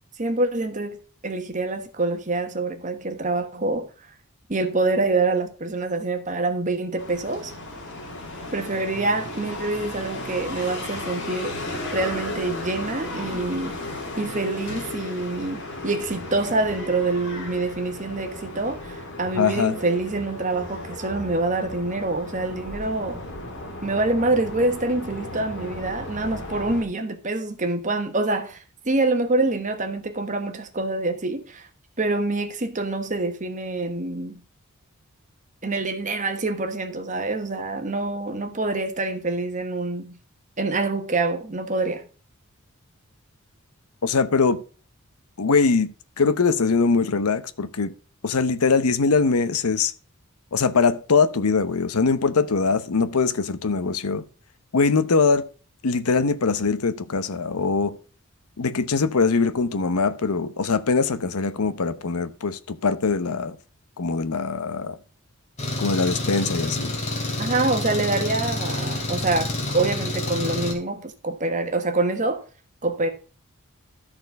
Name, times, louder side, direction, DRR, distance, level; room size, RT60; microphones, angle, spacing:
voice 1, 0.2-1.0 1.2-3.9 4.5-7.5 8.5-11.6 11.9-13.8 14.2-23.2 23.8-31.7 32.0-34.4 35.6-40.2 40.6-42.1 67.4-72.4 72.8-73.1, right 2 dB, 35° right, 1.2 m, -26 dB
sound 1, 7.0-26.8, left 2 dB, 55° left, 2.5 m, -35 dB
voice 2, 19.4-19.7 44.0-44.6 45.4-45.9 46.2-47.9 48.2-49.9 50.5-54.2 54.7-55.4 55.8-57.9 58.6-63.6 64.0-64.9 65.8-66.9, left 4 dB, 80° left, 0.8 m, -22 dB
Engine, 65.6-70.7, left 2 dB, 30° left, 2.4 m, -28 dB
13.0 x 4.4 x 5.1 m
head